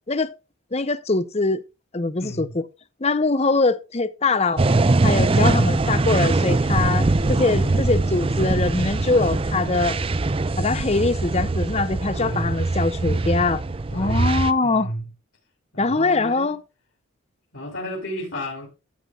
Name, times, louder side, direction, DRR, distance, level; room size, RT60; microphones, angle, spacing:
voice 1, 0.7-1.6 1.9-2.6 3.0-4.6 5.0-10.0 10.6-13.6 13.9-14.9 15.8-16.6, left 3 dB, 30° left, 0.7 m, -22 dB
voice 2, 2.2-2.5 7.6-7.9 10.7-11.0 12.2-12.7 13.9-15.0 15.7-16.6 17.5-18.7, equal, 65° left, 3.8 m, -32 dB
Xtrap depart, 4.6-14.5, right 2 dB, 25° right, 0.5 m, -22 dB
13.5 x 8.9 x 2.4 m
head